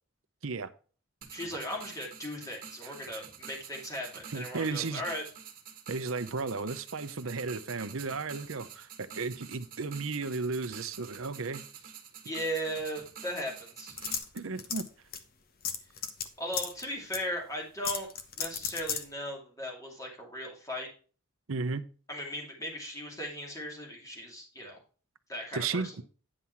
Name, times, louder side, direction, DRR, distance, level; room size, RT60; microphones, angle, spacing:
sound 1, 1.2-14.2, right 7 dB, 45° right, 1.5 m, -48 dB
voice 1, 1.3-5.2 12.2-13.9 16.4-18.1 18.4-20.9 22.1-24.8 25.3-25.9, equal, 15° left, -1 dB, 2.5 m, -37 dB
voice 2, 4.3-5.2 5.9-11.6 14.3-14.9 21.5-21.8 25.5-26.0, right 4 dB, 70° right, 12 dB, 0.7 m, -34 dB
sound 2, 14.0-14.9 15.1-15.2 15.6-16.2 16.5-16.8 17.1-17.2 17.8-19.0, left 7 dB, 45° left, 1.0 m, -33 dB
9.8 x 5.7 x 4.5 m, 0.38 s
head